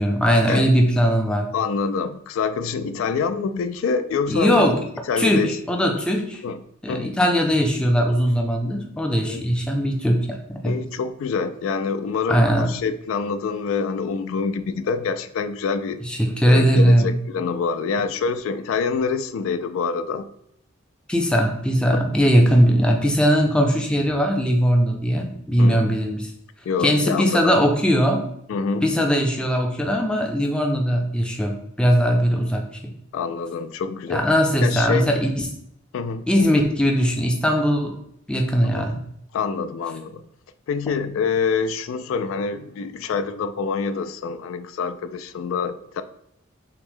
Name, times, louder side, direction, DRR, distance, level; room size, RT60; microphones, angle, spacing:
voice 1, 0.0-1.5 4.3-4.8 5.2-6.4 6.8-10.8 12.3-12.7 16.1-17.1 21.1-26.3 26.8-28.2 28.8-32.9 34.1-35.3 36.3-37.9 38.3-39.0, equal, 5° left, 2 dB, 0.4 m, -20 dB
voice 2, 1.5-4.8 5.1-5.6 6.4-6.6 6.9-7.1 9.3-9.4 10.6-16.0 16.5-20.3 25.6-25.9 26.7-27.6 28.5-28.9 33.1-34.3 34.6-35.1 35.9-36.3 38.8-38.9 39.3-40.3 40.7-46.0, left 5 dB, 80° left, 11 dB, 0.3 m, -26 dB
5.8 x 2.1 x 3.5 m, 0.75 s
head